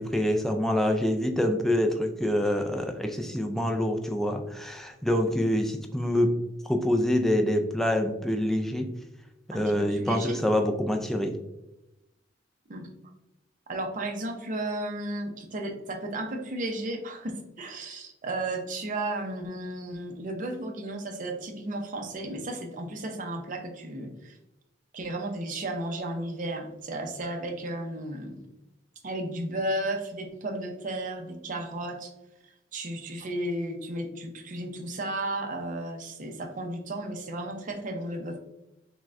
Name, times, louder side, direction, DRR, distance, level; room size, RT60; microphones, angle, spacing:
voice 1, 0.0-6.3 6.7-8.9 9.5-11.4, left 1 dB, ahead, 4 dB, 0.3 m, -26 dB
voice 2, 9.5-10.4 12.7-12.9 13.7-24.4 24.9-28.4 29.0-32.1 32.7-38.4, right 1 dB, 45° right, 3 dB, 0.6 m, -34 dB
5.8 x 2.1 x 2.4 m, 0.93 s
head